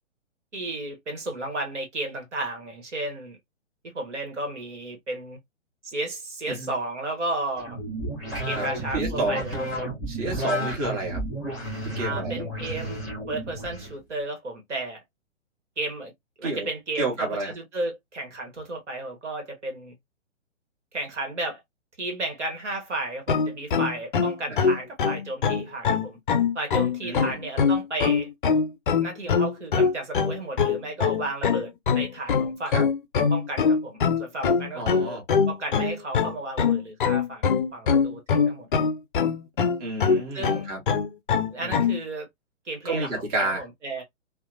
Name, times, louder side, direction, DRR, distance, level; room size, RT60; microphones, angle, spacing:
voice 1, 0.5-3.4 3.9-5.4 5.8-7.8 8.5-9.9 12.0-13.0 13.3-15.0 15.8-16.1 16.4-19.9 20.9-21.6 22.0-26.2 26.5-28.3 29.0-32.9 33.3-35.2 35.5-37.4 37.7-38.9 40.3-40.7 41.5-42.3 42.6-44.0, right 2 dB, 70° right, 1.1 m, -33 dB
sound 1, 7.6-13.9, right 1 dB, ahead, 1.0 m, -32 dB
voice 2, 8.9-9.4 10.1-11.2 12.0-12.4 16.4-16.7 17.0-17.5 24.5-24.7 27.0-27.4 32.7-32.9 34.7-35.2 39.8-40.8 41.6-41.8 42.8-43.6, right 2 dB, 30° right, 1.1 m, -30 dB
sound 2, 23.3-42.0, left 6 dB, 45° left, 0.4 m, -23 dB
2.8 x 2.1 x 2.4 m
figure-of-eight pair, 125°, 37 cm